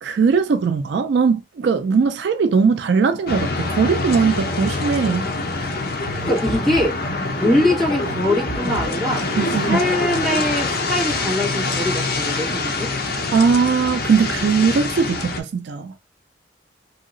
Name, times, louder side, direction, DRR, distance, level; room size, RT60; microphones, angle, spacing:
voice 1, 0.0-5.3 9.4-9.8 13.3-15.9, right 5 dB, 60° right, 0.3 m, -19 dB
sound 1, 3.3-15.4, left 3 dB, 50° left, 0.6 m, -25 dB
sound 2, 6.0-11.8, right 1 dB, 20° left, 1.7 m, -30 dB
voice 2, 6.2-7.0 7.3-12.9, left 1 dB, ahead, 1.7 m, -22 dB
2.9 x 2.8 x 2.6 m
head